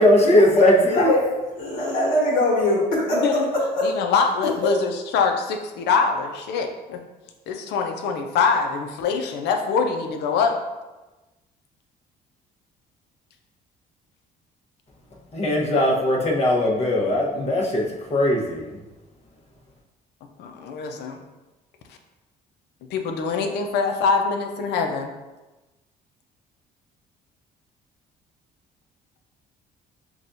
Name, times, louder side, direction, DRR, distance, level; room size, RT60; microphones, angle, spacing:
voice 1, 0.0-1.1 15.3-18.7, left 1 dB, 40° left, -2 dB, 1.0 m, -19 dB
voice 2, 0.9-3.2 3.8-3.9, left 2 dB, 60° left, -5 dB, 1.4 m, -22 dB
voice 3, 3.1-3.5 3.8-7.0 7.5-10.5 20.4-21.2 22.9-25.1, left 5 dB, 80° left, 5 dB, 0.6 m, -24 dB
5.9 x 2.3 x 2.6 m, 1.1 s
cardioid pair, 110°, 17 cm